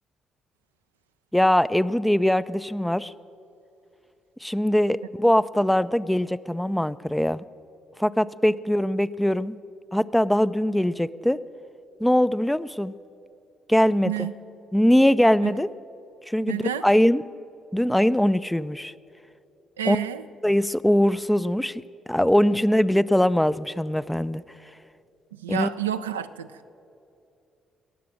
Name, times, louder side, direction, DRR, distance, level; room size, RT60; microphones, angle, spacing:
voice 1, 1.3-3.1 4.4-7.4 8.0-9.6 9.9-11.4 12.0-12.9 13.7-14.3 14.7-15.7 16.3-17.2 17.7-18.9 19.9-20.0 20.4-21.8 22.1-24.4 25.5-25.7, equal, 5° left, 16 dB, 0.4 m, -21 dB
voice 2, 14.0-14.4 15.4-15.6 16.5-16.9 19.8-20.3 25.3-26.7, right 11 dB, 85° right, 9 dB, 0.4 m, -30 dB
20.5 x 7.6 x 7.6 m, 2.6 s
figure-of-eight pair, 45°, 0 cm